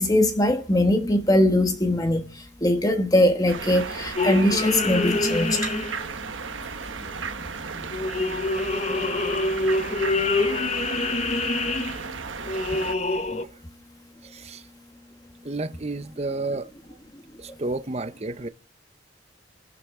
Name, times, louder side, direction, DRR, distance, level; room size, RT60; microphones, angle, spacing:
voice 1, 0.0-5.7, left 1 dB, 20° left, 1.2 m, -21 dB
sound 1, 3.5-13.0, right 5 dB, 85° right, 1.2 m, -35 dB
sound 2, 4.1-6.3 6.6-7.3 7.7-13.4, left 2 dB, 35° left, 0.8 m, -26 dB
voice 2, 15.4-16.7 17.4-18.5, right 2 dB, 35° right, 0.7 m, -31 dB
28.5 x 11.5 x 3.6 m
head